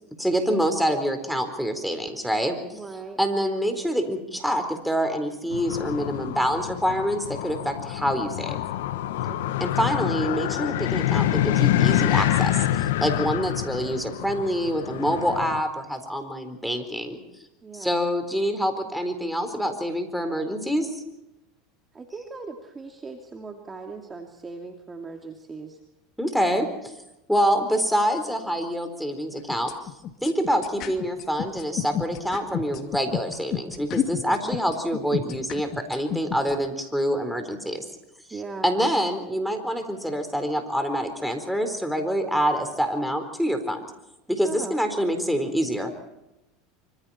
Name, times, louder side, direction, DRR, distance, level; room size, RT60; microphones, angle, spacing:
voice 1, 0.2-2.8 3.2-8.6 9.6-17.2 17.7-21.0 26.2-26.9 27.3-29.7 30.2-37.8 38.6-43.8 44.3-45.9, equal, ahead, 6 dB, 4.3 m, -26 dB
voice 2, 2.7-3.2 9.2-9.6 17.6-17.9 21.9-25.8 34.3-34.6 38.3-38.7 44.4-44.8, right 4 dB, 20° right, 3 dB, 2.5 m, -39 dB
sound 1, 5.5-15.6, left 13 dB, 85° left, 1.2 m, -26 dB
sound 2, 29.4-36.5, left 10 dB, 45° left, 2.6 m, -29 dB
27.0 x 26.0 x 4.4 m, 0.93 s
supercardioid pair, 120°, 0 cm